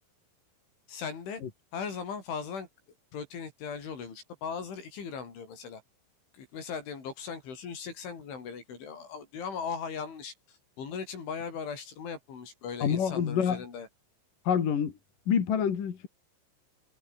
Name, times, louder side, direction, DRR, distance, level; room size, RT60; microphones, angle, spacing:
voice 1, 0.9-1.4 1.7-2.7 3.1-5.8 6.3-13.9, left 6 dB, 65° left, 7.8 m, -38 dB
voice 2, 12.8-13.6 14.5-14.9 15.3-16.1, left 7 dB, 50° left, 3.8 m, -27 dB
omnidirectional pair, 5.9 m